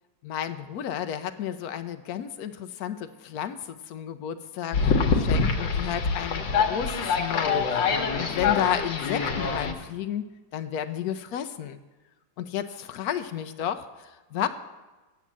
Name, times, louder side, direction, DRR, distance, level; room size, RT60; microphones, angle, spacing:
voice 1, 0.2-10.2 10.5-11.8 12.4-14.5, left 10 dB, 70° left, 9 dB, 1.0 m, -32 dB
sound 1, 4.7-9.7, left 5 dB, 85° left, 1.7 m, -25 dB
8.3 x 7.9 x 7.4 m, 1.2 s
omnidirectional pair, 2.0 m